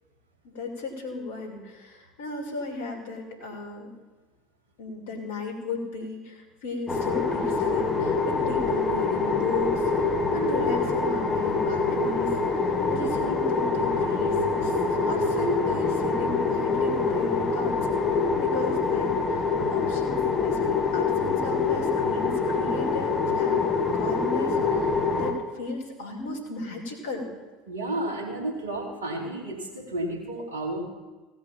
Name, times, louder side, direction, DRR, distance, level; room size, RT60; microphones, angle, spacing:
voice 1, 0.4-3.9 4.8-17.8 18.1-27.3, left 2 dB, 70° left, 2 dB, 2.6 m, -35 dB
sound 1, 6.9-25.3, left 4 dB, 30° left, 1.6 m, -25 dB
voice 2, 27.7-30.8, right 1 dB, 80° right, 1 dB, 2.3 m, -32 dB
16.5 x 5.6 x 9.0 m, 1.3 s
figure-of-eight pair, 70°, 0 cm